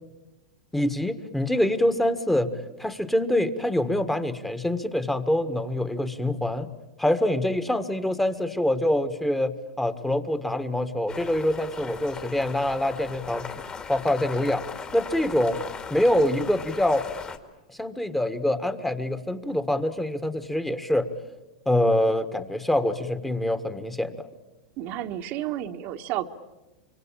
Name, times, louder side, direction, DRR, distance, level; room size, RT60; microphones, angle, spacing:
voice 1, 0.7-2.5 2.8-6.7 7.0-13.5 13.9-14.6 14.9-15.6 15.9-17.0 17.8-21.1 21.6-24.1, left 1 dB, 5° left, 10 dB, 1.6 m, -25 dB
sound 1, 11.1-17.4, left 5 dB, 25° left, 2.1 m, -38 dB
voice 2, 24.8-26.3, right 12 dB, 50° right, 5 dB, 1.3 m, -31 dB
26.0 x 24.0 x 8.7 m, 1.0 s
hypercardioid pair, 105°, 4 cm